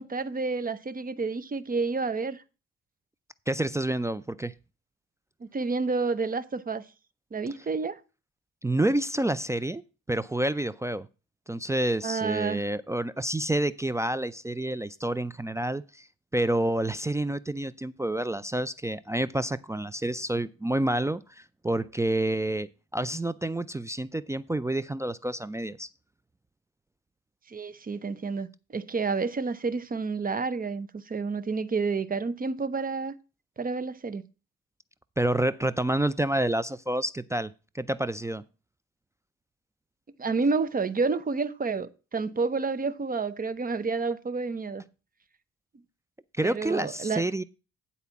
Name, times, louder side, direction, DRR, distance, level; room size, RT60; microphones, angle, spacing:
voice 1, 0.0-2.4 5.4-6.8 7.3-8.0 12.0-12.6 27.5-33.1 33.6-34.2 40.2-44.8 46.4-47.2, right 4 dB, 30° right, 0.8 m, -29 dB
voice 2, 3.5-4.5 8.6-9.8 10.1-11.1 11.5-16.1 16.3-25.9 35.2-38.4 46.4-47.4, right 1 dB, 10° right, 0.4 m, -28 dB
9.8 x 4.2 x 6.9 m
cardioid pair, 90°, 30 cm